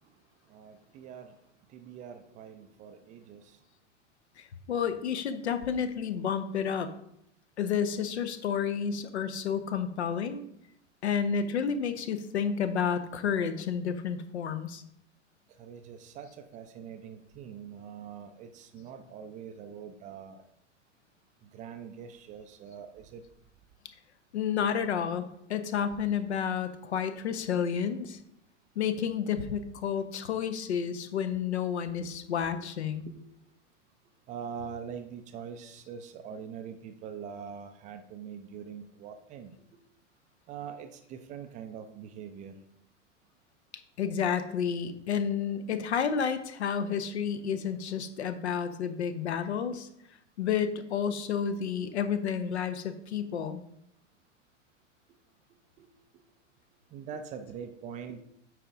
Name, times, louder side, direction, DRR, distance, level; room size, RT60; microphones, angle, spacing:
voice 1, 0.5-1.4 1.7-3.6 15.6-20.4 21.4-23.2 32.0-32.2 32.5-33.2 34.3-39.6 40.5-42.6 55.8-55.9 56.9-58.2, right 7 dB, 20° right, 7 dB, 0.4 m, -43 dB
voice 2, 4.4-6.9 7.6-10.4 11.0-14.8 24.3-28.2 28.8-33.1 44.0-49.9 50.4-53.6, left 7 dB, 60° left, 10 dB, 0.8 m, -30 dB
8.8 x 4.9 x 3.6 m, 0.74 s
figure-of-eight pair, 90°, 37 cm